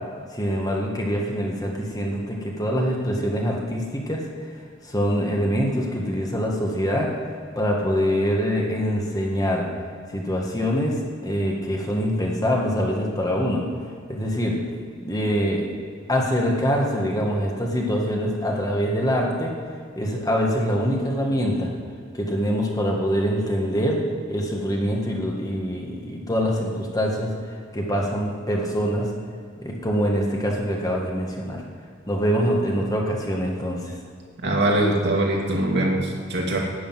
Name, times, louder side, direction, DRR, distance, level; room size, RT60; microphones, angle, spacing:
voice 1, 0.3-4.2 4.8-7.1 7.6-9.7 10.1-13.6 14.1-14.6 15.0-15.7 16.1-19.5 20.0-21.7 22.1-24.0 24.3-27.3 27.7-29.1 29.6-31.6 32.1-33.8, equal, 20° left, -1 dB, 1.8 m, -24 dB
voice 2, 34.4-36.6, right 1 dB, 60° right, -1 dB, 2.5 m, -22 dB
11.5 x 6.7 x 9.2 m, 2.1 s
head